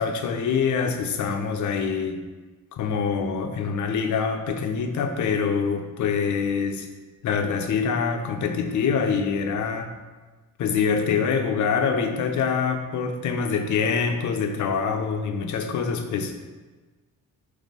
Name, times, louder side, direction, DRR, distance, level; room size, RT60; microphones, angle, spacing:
voice 1, 0.0-2.2 2.7-6.9 7.2-9.9 10.6-16.5, left 6 dB, 55° left, 5 dB, 0.7 m, -25 dB
5.3 x 3.4 x 5.3 m, 1.3 s
cardioid pair, 150°, 35 cm